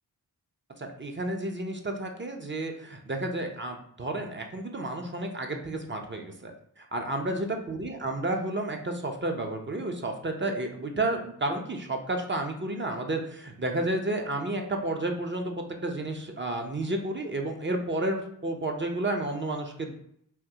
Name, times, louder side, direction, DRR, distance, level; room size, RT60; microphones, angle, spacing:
voice 1, 0.8-6.5 6.8-15.6 15.8-19.9, right 2 dB, 30° right, 3 dB, 0.6 m, -31 dB
3.6 x 2.6 x 2.8 m, 0.69 s
cardioid pair, 50°, 41 cm